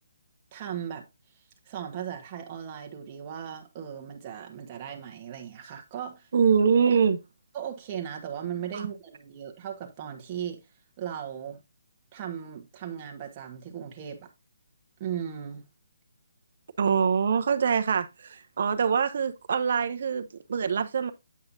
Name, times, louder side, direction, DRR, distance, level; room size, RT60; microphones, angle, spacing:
voice 1, 0.5-1.1 1.6-6.3 7.5-10.6 11.0-11.6 12.1-14.3 15.0-15.6, right 9 dB, 30° right, 1.3 m, -37 dB
voice 2, 6.3-7.2 8.7-8.9 16.8-21.1, right 6 dB, 55° right, 0.8 m, -24 dB
8.5 x 5.6 x 2.6 m
hypercardioid pair, 155°, 0 cm